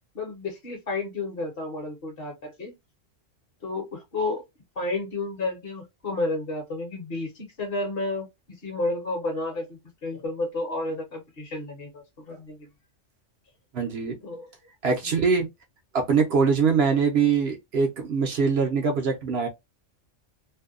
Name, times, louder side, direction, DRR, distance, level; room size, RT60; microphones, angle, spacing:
voice 1, 0.1-2.7 3.6-4.4 4.8-8.3 8.6-12.7 14.2-14.5 15.0-15.2, left 2 dB, 55° left, 1.0 m, -31 dB
voice 2, 13.7-14.2 14.8-15.5 15.9-19.5, right 5 dB, 60° right, 0.8 m, -23 dB
2.6 x 2.2 x 2.3 m
omnidirectional pair, 1.3 m